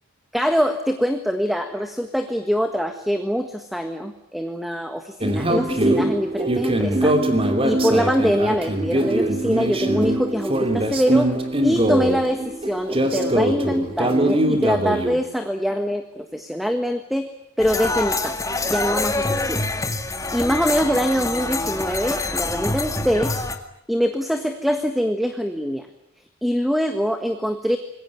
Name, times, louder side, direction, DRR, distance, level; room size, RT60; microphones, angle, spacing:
voice 1, 0.3-7.2 7.6-11.3 11.6-17.3 17.6-19.7 20.3-23.3 23.9-25.9 26.4-27.8, equal, ahead, 7 dB, 1.5 m, -24 dB
sound 1, 5.2-15.2, right 1 dB, 25° right, 2.8 m, -22 dB
sound 2, 17.6-23.6, left 2 dB, 15° left, 2.0 m, -26 dB
26.5 x 21.5 x 9.6 m, 0.77 s
head